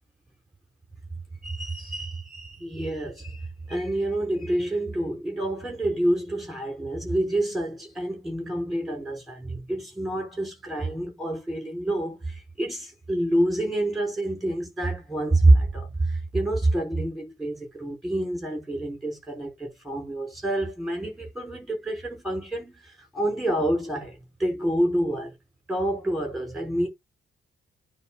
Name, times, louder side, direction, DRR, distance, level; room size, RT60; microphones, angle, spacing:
voice 1, 1.4-25.3 25.7-26.9, right 1 dB, ahead, 5.4 m, -27 dB
9.6 x 3.5 x 6.6 m
wide cardioid pair, 180°, 21 cm